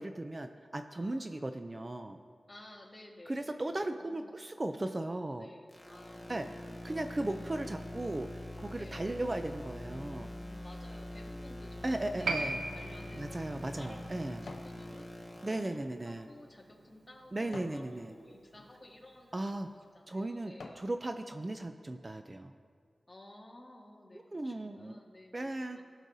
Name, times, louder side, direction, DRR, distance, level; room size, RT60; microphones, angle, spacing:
voice 1, 0.0-2.2 3.3-5.5 6.3-6.5 6.8-10.3 11.8-12.6 13.1-14.4 15.4-16.3 17.3-18.2 19.3-19.7 20.1-22.5 24.3-25.0 25.3-25.8, right 2 dB, 35° right, 7 dB, 0.4 m, -37 dB
voice 2, 0.9-1.6 2.5-4.3 5.3-7.7 8.7-9.2 9.9-13.4 13.8-19.5 19.9-20.8 23.1-25.8, left 1 dB, 30° left, 0 dB, 1.5 m, -54 dB
sound 1, 5.7-15.7, left 1 dB, 5° right, 1.4 m, -44 dB
Piano, 12.2-19.2 19.5-19.6, right 2 dB, 75° right, 0.7 m, -42 dB
sound 2, 14.3-14.8 15.2-17.9 18.5-18.7 19.4-19.6 20.1-20.9 21.4-21.5, left 3 dB, 80° left, 0.8 m, -52 dB
17.0 x 6.3 x 2.7 m, 2.1 s
cardioid pair, 60°, 0 cm